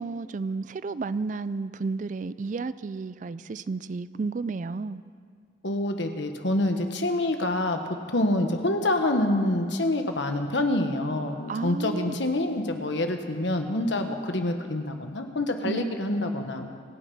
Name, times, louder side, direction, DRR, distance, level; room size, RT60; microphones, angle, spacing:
voice 1, 0.0-5.0 11.5-12.2 15.6-15.9, right 4 dB, 40° right, 16 dB, 0.4 m, -32 dB
voice 2, 5.6-7.8 8.1-16.7, left 1 dB, 70° left, 5 dB, 1.4 m, -26 dB
26.0 x 9.2 x 5.5 m, 2.1 s
head